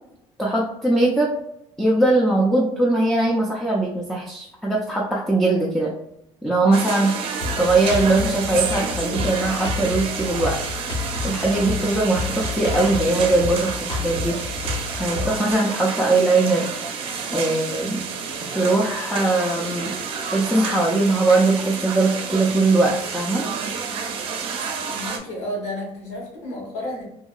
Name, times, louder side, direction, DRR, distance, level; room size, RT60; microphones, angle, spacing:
voice 1, 0.4-1.3 1.8-5.9 6.4-7.1 7.6-10.6 11.2-14.4 15.0-16.6 17.3-18.0 18.5-19.9 20.3-23.4, right 2 dB, 5° left, -3 dB, 0.4 m, -20 dB
sound 1, 6.7-25.2, right 5 dB, 50° right, 0.5 m, -30 dB
Drum kit, 7.4-15.4, left 4 dB, 45° left, 0.7 m, -30 dB
voice 2, 24.9-27.0, left 1 dB, 75° left, -2 dB, 1.3 m, -31 dB
2.9 x 2.7 x 2.3 m, 0.82 s
cardioid pair, 140°, 12 cm